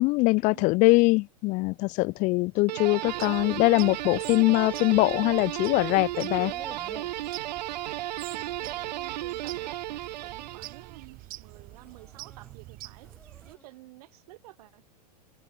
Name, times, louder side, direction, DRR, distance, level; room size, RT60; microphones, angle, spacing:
voice 1, 0.0-6.5, left 23 dB, 40° left, 0.4 m, -23 dB
sound 1, 2.5-3.6 3.9-5.8 6.1-7.2 7.7-8.1 8.4-8.6 9.4-9.8 10.3-10.7 11.5-13.7, left 2 dB, 5° left, 2.3 m, -53 dB
sound 2, 2.7-11.0, right 14 dB, 85° right, 0.4 m, -34 dB
sound 3, 3.1-13.6, right 19 dB, 45° right, 1.6 m, -46 dB
voice 2, 8.2-13.1 13.4-14.8, right 19 dB, 65° right, 7.0 m, -51 dB
open air
hypercardioid pair, 110°, 21 cm